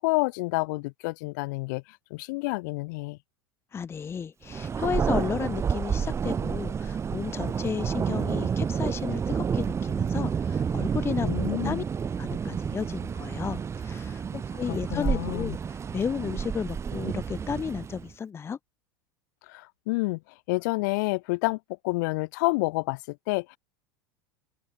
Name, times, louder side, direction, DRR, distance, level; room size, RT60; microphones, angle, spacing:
voice 1, 0.0-3.2 11.2-11.8 14.7-15.6 19.5-20.2 20.5-23.6, left 25 dB, 55° left, 1.7 m, -29 dB
voice 2, 3.7-11.8 12.2-18.6, left 6 dB, 20° left, 1.1 m, -33 dB
Thunder, 4.5-18.1, right 6 dB, 25° right, 2.7 m, -30 dB
open air
figure-of-eight pair, 80°, 12 cm